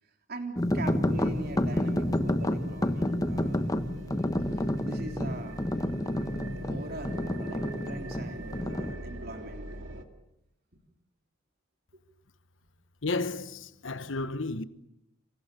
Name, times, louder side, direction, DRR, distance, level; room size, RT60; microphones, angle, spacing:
voice 1, 0.3-3.6 4.5-5.6 6.7-9.9 11.9-12.0, right 2 dB, 50° right, 3.7 m, -42 dB
sound 1, 0.6-8.9, left 1 dB, 20° left, 1.0 m, -29 dB
sound 2, 1.1-10.0, right 1 dB, 70° right, 2.4 m, -42 dB
voice 2, 13.0-14.6, left 3 dB, 70° left, 1.2 m, -32 dB
28.0 x 26.5 x 6.9 m
head